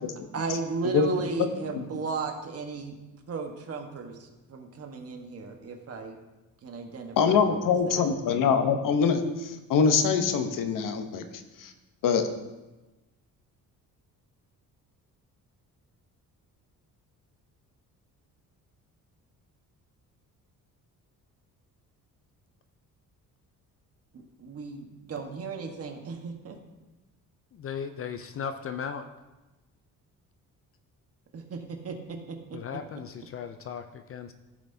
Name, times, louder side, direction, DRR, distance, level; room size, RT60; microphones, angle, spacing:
voice 1, 0.3-3.0 3.3-6.2 6.6-8.0 24.1-26.6 31.3-32.6, right 4 dB, 45° right, 3 dB, 1.3 m, -35 dB
voice 2, 1.4-1.9 7.2-11.2 11.6-11.7 12.0-12.2, left 6 dB, 70° left, 8 dB, 0.9 m, -24 dB
voice 3, 27.5-29.1 32.5-34.3, left 7 dB, 40° left, 9 dB, 0.4 m, -36 dB
15.0 x 5.8 x 2.7 m, 1.1 s
cardioid pair, 125°, 34 cm